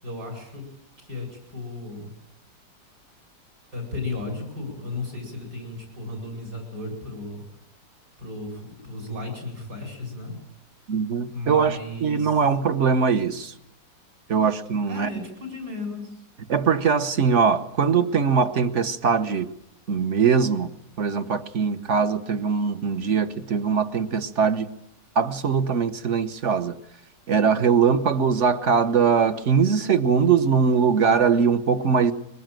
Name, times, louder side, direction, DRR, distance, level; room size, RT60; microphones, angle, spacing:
voice 1, 0.0-0.6 1.0-2.1 3.7-7.4 8.2-10.4 11.3-12.4 14.9-16.2, left 2 dB, 65° right, 8.7 m, -35 dB
voice 2, 10.9-13.5 14.3-15.1 16.5-19.5 19.9-20.7 21.0-24.7 25.1-26.8 27.3-32.1, right 6 dB, 45° right, 1.3 m, -21 dB
22.5 x 20.5 x 9.1 m
omnidirectional pair, 2.0 m